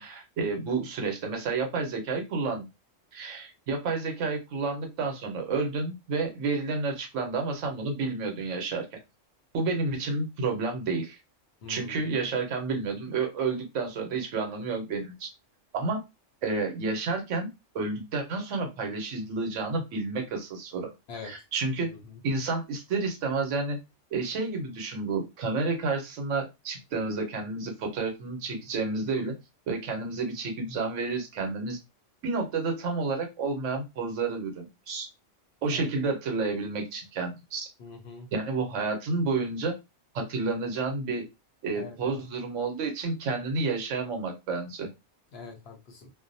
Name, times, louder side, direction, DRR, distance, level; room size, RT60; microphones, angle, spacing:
voice 1, 0.0-2.7 3.1-8.9 9.5-11.2 11.7-15.3 15.7-16.0 16.4-17.5 17.7-20.9 21.2-21.9 22.2-23.8 24.1-29.4 29.7-31.8 32.2-35.1 35.6-37.7 38.3-39.7 40.1-41.2 41.6-44.9, right 3 dB, 70° right, 4 dB, 1.0 m, -30 dB
voice 2, 11.6-12.0 21.1-21.3 21.8-22.2 35.7-35.9 37.8-38.3 41.8-42.2 45.3-46.1, left 4 dB, 60° left, 3 dB, 0.7 m, -43 dB
2.5 x 2.0 x 2.6 m, 0.24 s
omnidirectional pair, 1.3 m